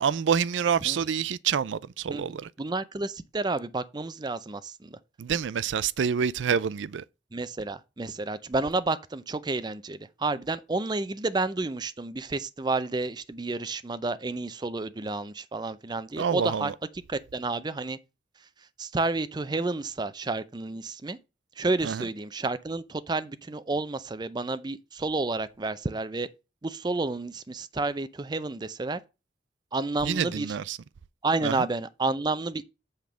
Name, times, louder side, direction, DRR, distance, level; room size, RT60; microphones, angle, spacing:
voice 1, 0.0-2.5 5.2-7.0 16.2-16.7 21.8-22.0 30.0-30.8 31.4-31.7, right 7 dB, 85° right, 0.4 m, -27 dB
voice 2, 2.1-5.0 7.3-16.7 17.1-18.0 18.8-21.2 21.6-26.3 26.6-29.0 29.7-30.6 31.2-32.6, right 3 dB, 25° right, 0.5 m, -30 dB
8.0 x 3.5 x 6.2 m
head